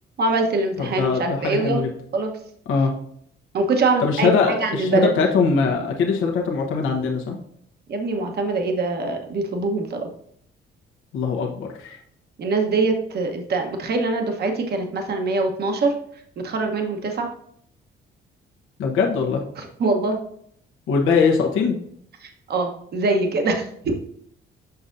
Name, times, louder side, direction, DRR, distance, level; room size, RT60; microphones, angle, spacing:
voice 1, 0.2-1.8 2.1-2.3 3.5-5.1 7.9-10.1 12.4-15.9 16.4-17.3 19.6-20.2 22.2-23.9, right 3 dB, 55° right, 3 dB, 1.1 m, -23 dB
voice 2, 0.8-1.9 2.7-2.9 4.0-7.4 11.1-12.0 18.8-19.4 20.9-21.8, left 5 dB, 85° left, 1 dB, 1.0 m, -21 dB
6.8 x 5.6 x 2.6 m, 0.67 s
cardioid pair, 90°, 20 cm